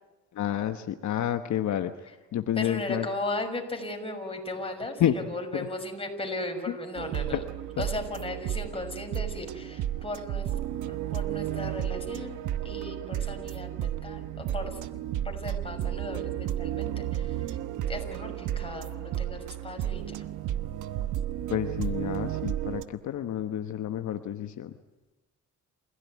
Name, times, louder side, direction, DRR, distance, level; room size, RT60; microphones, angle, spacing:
voice 1, 0.3-3.1 5.0-5.7 6.7-6.8 7.3-7.4 7.8-7.9 21.5-24.8, left 10 dB, 70° left, 8 dB, 1.2 m, -30 dB
voice 2, 2.6-7.4 7.8-10.5 10.9-12.4 12.6-17.6 17.9-20.2, left 2 dB, 20° left, 3 dB, 6.2 m, -36 dB
sound 1, 7.0-22.9, right 11 dB, 80° right, 1.1 m, -33 dB
28.5 x 16.5 x 9.6 m, 1.1 s
cardioid pair, 90°, 30 cm